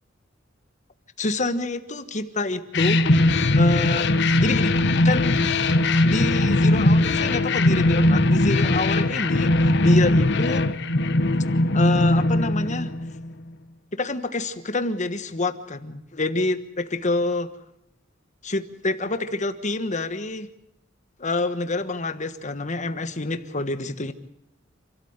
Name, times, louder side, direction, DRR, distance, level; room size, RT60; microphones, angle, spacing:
voice 1, 1.2-3.0 3.5-4.1 4.4-4.7 5.0-5.4 6.0-10.7 11.7-12.9 13.9-17.5 18.4-20.5 21.2-24.1, left 2 dB, 40° left, 10 dB, 1.4 m, -27 dB
sound 1, 2.7-13.3, left 2 dB, 65° left, 1.2 m, -20 dB
28.0 x 13.0 x 8.1 m, 0.81 s
head